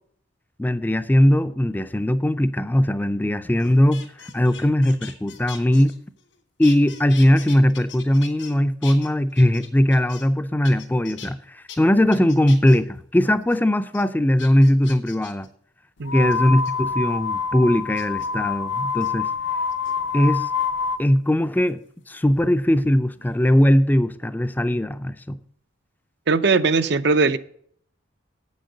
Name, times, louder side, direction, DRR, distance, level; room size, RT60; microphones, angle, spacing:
voice 1, 0.6-5.9 6.6-15.5 16.1-19.3 20.1-20.5 21.0-21.8 22.1-25.4, left 1 dB, 10° left, 0.4 m, -19 dB
sound 1, 3.6-6.3 6.6-8.5 8.8-10.4 10.6-11.3 11.7-11.8 12.1-12.8 13.2-13.6 13.9-14.0 14.4-15.5 16.3-16.7 18.0-18.3 18.9-19.1 19.7-20.3 21.7-22.9 23.1-23.5, left 8 dB, 85° left, 2.0 m, -42 dB
sound 2, 16.0-21.0, left 5 dB, 65° left, 0.6 m, -26 dB
voice 2, 26.3-27.4, right 4 dB, 60° right, 0.6 m, -19 dB
8.6 x 6.4 x 6.6 m
head